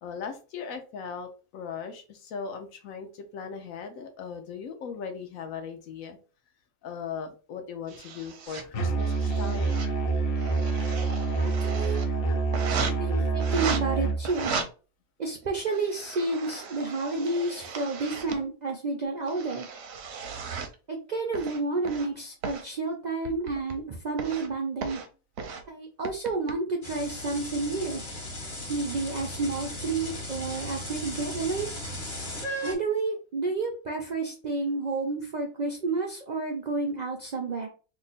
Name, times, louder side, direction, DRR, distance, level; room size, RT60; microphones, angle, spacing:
voice 1, 0.0-6.2 6.8-9.8, left 6 dB, 75° left, 6 dB, 1.0 m, -38 dB
sound 1, 7.9-8.6 9.0-9.9 10.3-12.1 12.5-12.9 13.4-13.8 14.2-14.7 15.4-18.4 19.0-20.7 21.3-22.1 22.4-22.6 23.2-23.8 24.2-24.5 24.8-25.1 25.4-25.6 26.0-26.5, right 5 dB, 65° right, 0.7 m, -36 dB
Musical instrument, 8.7-14.2, right 4 dB, 55° left, 0.8 m, -27 dB
voice 2, 11.4-12.0 12.7-14.5 15.2-19.7 20.9-25.0 25.7-28.0 28.7-31.7 32.6-37.7, right 3 dB, 85° right, 1 dB, 0.4 m, -30 dB
sound 2, 26.8-32.7, equal, 35° left, 1.1 m, -36 dB
2.9 x 2.3 x 4.0 m, 0.35 s
omnidirectional pair, 1.5 m